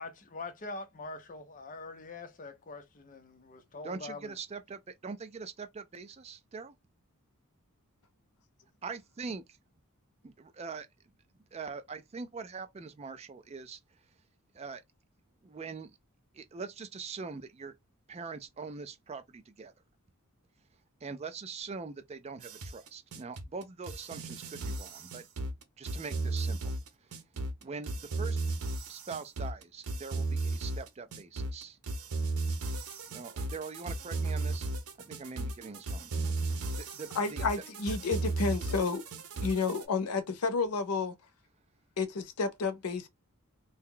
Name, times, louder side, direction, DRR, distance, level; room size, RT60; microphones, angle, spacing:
voice 1, 0.0-4.4, left 3 dB, 35° left, 0.6 m, -44 dB
voice 2, 3.8-6.7 8.8-9.4 10.2-10.9 11.5-13.8 14.5-14.8 15.4-15.9 16.3-17.7 18.1-19.7 21.0-25.3 25.8-26.7 27.0-27.2 27.6-28.4 28.9-31.8 33.1-34.7 35.0-36.1 36.8-37.5, right 4 dB, 30° right, 0.4 m, -43 dB
sound 1, 22.4-39.8, right 2 dB, 85° right, 0.7 m, -35 dB
voice 3, 37.2-39.0 39.4-41.1 42.0-43.1, left 4 dB, 90° left, 0.6 m, -31 dB
2.7 x 2.2 x 3.7 m
head